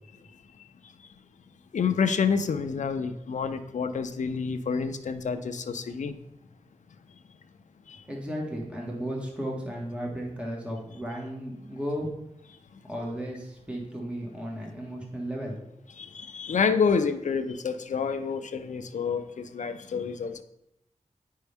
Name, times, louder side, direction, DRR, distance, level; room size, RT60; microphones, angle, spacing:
voice 1, 1.7-6.2 7.9-8.0 16.0-20.4, left 5 dB, 80° left, 9 dB, 0.5 m, -28 dB
voice 2, 8.1-12.1 12.9-15.6, equal, 10° right, -2 dB, 1.7 m, -34 dB
9.1 x 5.4 x 3.5 m, 0.82 s
wide cardioid pair, 95°, 12 cm